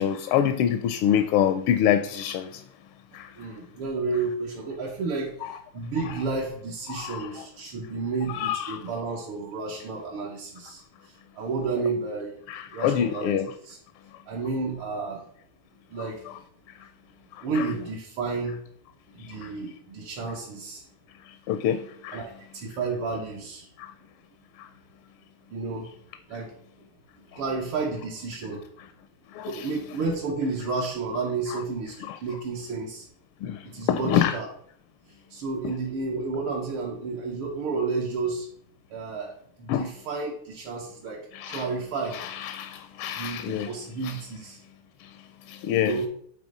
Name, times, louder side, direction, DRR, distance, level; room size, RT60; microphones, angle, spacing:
voice 1, 0.0-2.6 3.1-3.3 5.4-5.5 6.9-7.5 8.3-8.8 12.5-13.5 16.0-16.4 17.6-17.7 19.4-19.5 21.5-22.2 23.8-23.9 29.3-29.7 32.0-32.2 33.4-33.6 33.9-34.3 39.7-39.8 41.3-41.6 42.1-43.7 44.0-44.1 45.5-46.0, left 9 dB, 80° left, 1.5 m, -26 dB
voice 2, 3.4-5.3 5.7-12.4 12.7-13.8 14.3-15.2 15.9-16.2 17.4-18.6 19.1-20.8 22.1-23.7 25.5-25.9 26.3-26.5 27.4-28.6 29.5-33.1 33.6-34.5 35.3-38.5 38.9-42.2 43.1-44.6 45.7-46.1, right 4 dB, 75° right, 2.0 m, -31 dB
8.7 x 3.3 x 5.2 m
omnidirectional pair, 2.4 m